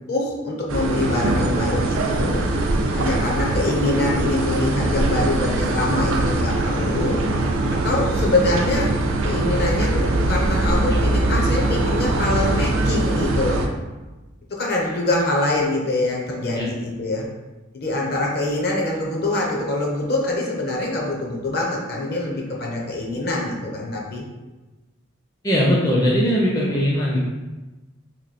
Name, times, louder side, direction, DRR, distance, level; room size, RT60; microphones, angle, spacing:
voice 1, 0.1-2.4 2.9-7.2 7.7-8.9 9.2-13.6 14.5-17.3 17.7-24.2 26.6-26.9, left 2 dB, 50° left, -1 dB, 0.7 m, -24 dB
sound 1, 0.7-13.7, right 2 dB, 90° right, 0.4 m, -22 dB
voice 2, 25.4-27.2, equal, 15° left, -5 dB, 0.4 m, -19 dB
3.0 x 2.6 x 4.1 m, 1.1 s
head